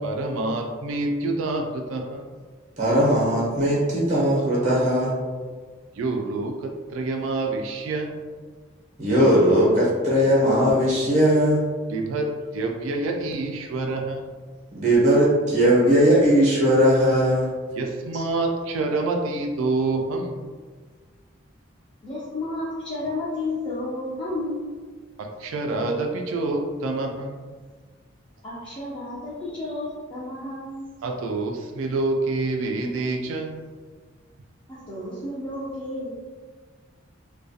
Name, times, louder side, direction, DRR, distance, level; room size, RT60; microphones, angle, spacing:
voice 1, 0.0-2.4 5.9-8.2 11.9-14.3 17.7-20.5 25.2-27.5 31.0-33.6, right 2 dB, 80° right, 3 dB, 0.3 m, -27 dB
voice 2, 2.8-5.1 9.0-11.6 14.7-17.5 18.1-18.2, equal, 35° right, -6 dB, 0.6 m, -19 dB
voice 3, 22.0-24.7 28.4-30.8 34.7-36.1, left 2 dB, 25° left, -10 dB, 0.4 m, -32 dB
2.3 x 2.2 x 2.6 m, 1.5 s
head